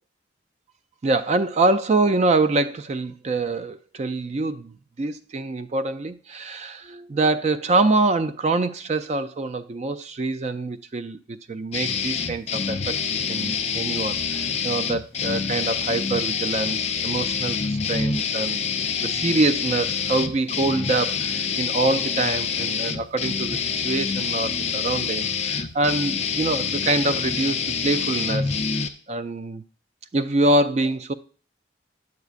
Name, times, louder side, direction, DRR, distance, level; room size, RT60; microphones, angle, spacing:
voice 1, 1.0-18.7 19.0-29.6 30.1-31.1, right 2 dB, 35° right, 0.3 m, -25 dB
sound 1, 11.7-28.9, left 6 dB, 35° left, 0.5 m, -26 dB
9.5 x 8.1 x 2.5 m
head